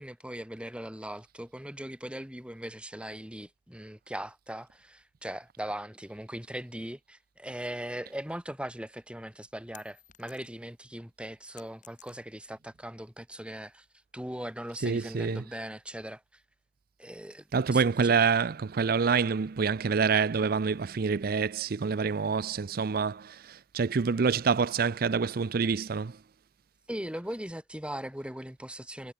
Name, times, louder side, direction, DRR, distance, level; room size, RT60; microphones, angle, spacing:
voice 1, 0.0-13.9 14.1-16.4 17.0-18.1 26.9-29.1, right 1 dB, 5° right, 4.1 m, -39 dB
sound 1, 9.7-10.8 11.1-12.6, left 10 dB, 45° left, 7.8 m, -56 dB
voice 2, 14.8-15.4 17.5-26.1, right 5 dB, 55° right, 0.5 m, -27 dB
head